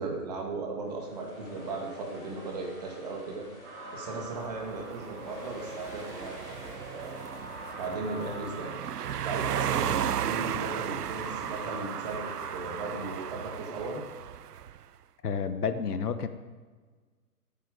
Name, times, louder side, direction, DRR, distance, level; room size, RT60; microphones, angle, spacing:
voice 1, 0.0-3.4 3.9-6.4 6.9-7.2 7.8-8.7 9.2-14.0, right 3 dB, 25° right, 0 dB, 2.0 m, -36 dB
sound 1, 0.8-12.7, left 1 dB, 10° left, 3.4 m, -49 dB
sound 2, 3.6-13.8, right 2 dB, 45° right, 4.5 m, -46 dB
sound 3, 4.5-14.8, right 10 dB, 80° right, 0.7 m, -35 dB
voice 2, 15.2-16.3, left 6 dB, 70° left, 10 dB, 1.2 m, -30 dB
21.0 x 9.2 x 4.9 m, 1.4 s
hypercardioid pair, 175°, 47 cm